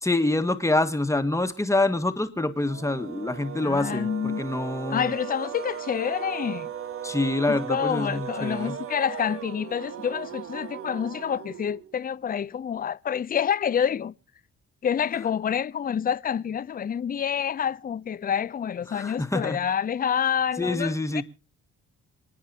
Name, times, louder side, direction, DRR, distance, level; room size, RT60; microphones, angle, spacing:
voice 1, 0.0-5.1 7.0-8.7 18.9-19.6 20.6-21.2, left 2 dB, 10° left, 1.7 m, -26 dB
sound 1, 2.6-12.0, right 9 dB, 45° right, 0.8 m, -37 dB
voice 2, 3.6-4.4 4.9-6.7 7.5-14.1 14.8-21.2, left 8 dB, 30° left, 0.5 m, -28 dB
27.0 x 9.5 x 2.8 m
cardioid pair, 90°, 30 cm